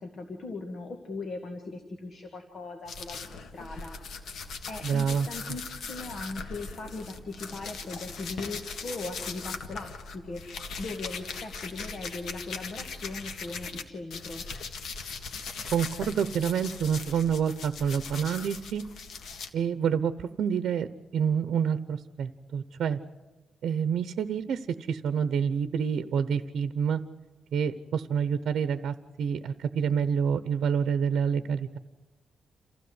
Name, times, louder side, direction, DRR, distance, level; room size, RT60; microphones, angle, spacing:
voice 1, 0.0-4.0 4.7-10.4 10.8-14.4, left 3 dB, 40° left, 5 dB, 2.0 m, -39 dB
sound 1, 2.9-13.8 14.1-19.5, left 4 dB, 75° left, 1.8 m, -40 dB
voice 2, 4.8-5.3 15.7-18.8 19.5-20.9 21.1-23.0 23.6-27.0 27.5-31.8, right 7 dB, 80° right, 12 dB, 0.9 m, -28 dB
28.0 x 16.0 x 8.1 m, 1.2 s
wide cardioid pair, 175°, 0 cm